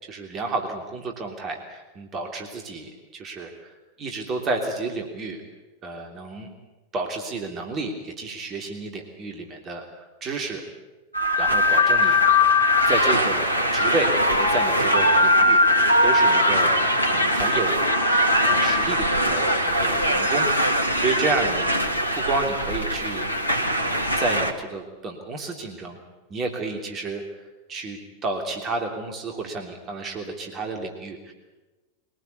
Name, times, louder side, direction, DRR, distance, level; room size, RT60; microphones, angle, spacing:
voice 1, 0.0-5.4 5.8-6.5 6.9-10.6 11.4-12.5 12.9-16.8 17.1-17.8 18.4-21.7 22.2-23.3 23.8-26.0 26.3-31.3, right 3 dB, 30° right, 2 dB, 3.2 m, -31 dB
sound 1, 11.1-24.5, left 1 dB, 85° left, 1.7 m, -21 dB
23.5 x 18.5 x 8.4 m, 1.2 s
figure-of-eight pair, 90°, 0 cm